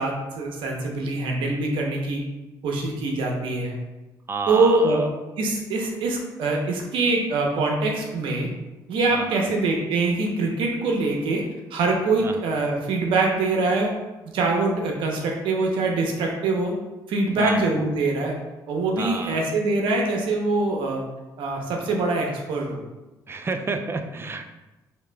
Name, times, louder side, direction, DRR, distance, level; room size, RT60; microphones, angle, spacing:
voice 1, 0.0-2.2 2.6-3.8 4.5-5.0 5.4-8.5 8.9-11.4 11.7-13.9 14.3-16.7 17.1-18.3 18.7-21.0 21.4-22.8, right 3 dB, 75° right, 1 dB, 0.8 m, -24 dB
voice 2, 4.3-5.0 9.1-9.5 12.2-12.4 17.4-17.7 19.0-19.4 23.3-24.5, right 3 dB, 30° right, 7 dB, 0.4 m, -30 dB
4.8 x 2.8 x 2.2 m, 1.1 s
supercardioid pair, 70°, 9 cm